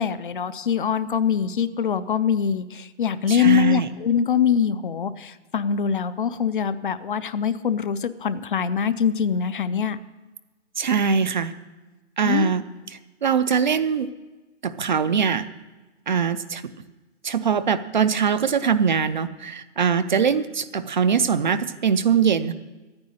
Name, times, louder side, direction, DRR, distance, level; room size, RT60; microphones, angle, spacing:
voice 1, 0.0-10.0 12.2-12.5, left 7 dB, 50° left, 14 dB, 0.5 m, -23 dB
voice 2, 3.3-3.9 10.8-11.5 12.2-14.1 14.6-15.5 16.1-16.6 17.2-22.5, right 6 dB, 45° right, 12 dB, 0.4 m, -22 dB
10.5 x 9.7 x 7.6 m, 1.2 s
hypercardioid pair, 170°, 35 cm